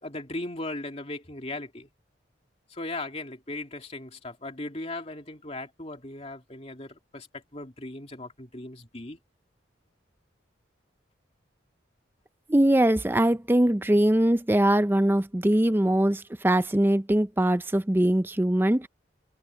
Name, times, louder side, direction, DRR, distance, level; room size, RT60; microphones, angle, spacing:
voice 1, 0.0-1.9 2.7-7.3 7.5-9.2, left 2 dB, 35° left, 2.7 m, -37 dB
voice 2, 12.5-18.9, right 1 dB, 10° right, 0.5 m, -22 dB
head